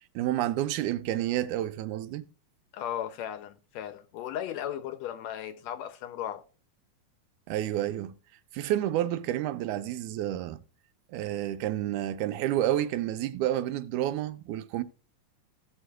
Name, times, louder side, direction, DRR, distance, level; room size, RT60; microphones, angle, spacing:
voice 1, 0.2-2.3 7.5-8.1 8.5-10.6 11.1-14.8, right 13 dB, 85° right, 2.1 m, -29 dB
voice 2, 2.7-6.4, left 10 dB, 75° left, 1.7 m, -36 dB
17.0 x 6.4 x 2.3 m
omnidirectional pair, 3.4 m